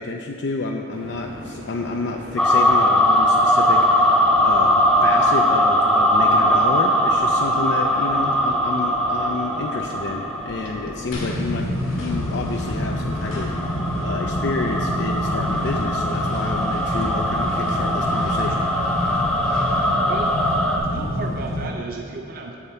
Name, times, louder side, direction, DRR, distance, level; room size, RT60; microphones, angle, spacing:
voice 1, 0.0-11.7 12.0-18.7, left 3 dB, 60° left, 2 dB, 0.4 m, -29 dB
sound 1, 0.9-13.2, equal, 70° right, 1.4 m, -38 dB
sound 2, 2.4-11.0 12.1-20.8, equal, 5° left, 0.7 m, -20 dB
sound 3, 11.1-21.7, equal, 85° left, 1.7 m, -27 dB
voice 2, 20.1-20.4 20.8-22.6, right 3 dB, 45° right, 2 dB, 0.5 m, -33 dB
8.1 x 7.2 x 4.3 m, 2.4 s
head